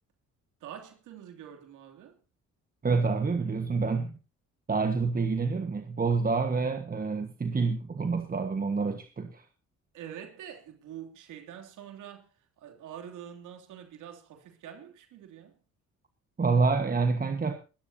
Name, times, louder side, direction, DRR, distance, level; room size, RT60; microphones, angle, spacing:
voice 1, 0.6-2.2 9.9-12.3 12.6-15.5, right 9 dB, 85° right, 3.0 m, -45 dB
voice 2, 2.8-4.2 4.7-9.4 16.4-17.5, right 4 dB, 30° right, 1.5 m, -27 dB
21.0 x 13.0 x 2.8 m
cardioid pair, 90°, 30 cm